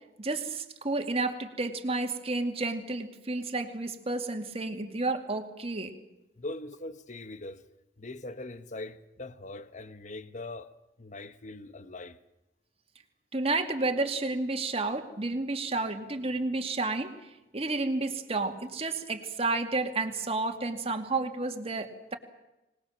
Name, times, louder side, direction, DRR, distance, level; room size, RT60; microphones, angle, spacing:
voice 1, 0.2-5.9 13.3-22.2, right 3 dB, 35° right, 2.5 m, -31 dB
voice 2, 6.4-7.6 8.0-10.7 11.0-12.2, left 2 dB, 45° left, 1.4 m, -41 dB
25.5 x 20.0 x 7.4 m
head